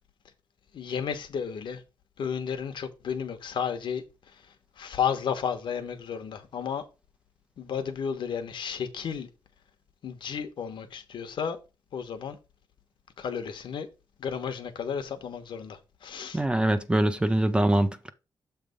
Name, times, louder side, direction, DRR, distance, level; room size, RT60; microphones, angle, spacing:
voice 1, 0.7-1.8 2.2-4.4 4.8-6.8 7.6-9.3 10.0-11.6 11.9-12.4 13.2-13.9 14.2-16.4, left 7 dB, 70° left, 1.2 m, -33 dB
voice 2, 16.3-18.1, right 1 dB, 10° right, 0.6 m, -23 dB
7.3 x 3.4 x 5.3 m
wide cardioid pair, 145°, 9 cm